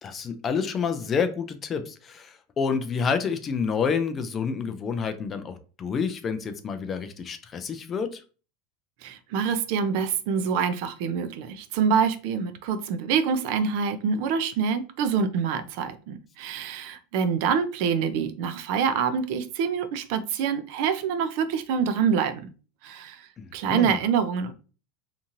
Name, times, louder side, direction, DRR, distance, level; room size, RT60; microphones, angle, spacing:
voice 1, 0.0-8.2 23.4-24.0, left 6 dB, 25° left, 0.3 m, -29 dB
voice 2, 9.0-22.5 22.8-24.5, right 6 dB, 55° right, 0.4 m, -26 dB
2.8 x 2.5 x 2.6 m
supercardioid pair, 155°, 0 cm